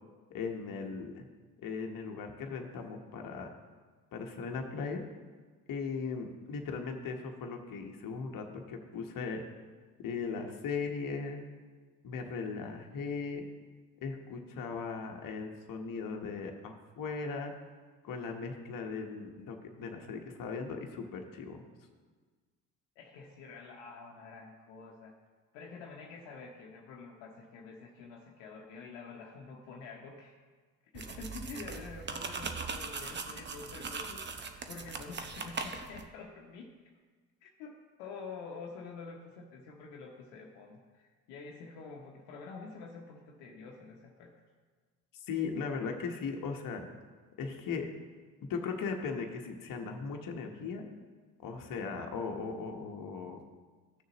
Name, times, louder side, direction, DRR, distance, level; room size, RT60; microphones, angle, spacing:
voice 1, 0.3-1.3 1.6-3.5 4.1-5.0 5.7-9.4 10.0-11.4 12.0-13.4 14.0-17.5 18.0-21.6 45.1-46.8 47.4-47.9 48.4-50.8 51.4-53.4, left 5 dB, 45° left, 3 dB, 1.2 m, -38 dB
voice 2, 23.0-25.1 25.5-30.3 30.9-36.7 37.4-44.3, left 4 dB, 65° left, 0 dB, 1.0 m, -47 dB
sound 1, 30.9-36.1, right 4 dB, 25° right, 0.8 m, -40 dB
13.5 x 6.5 x 3.0 m, 1.4 s
hypercardioid pair, 60°, 46 cm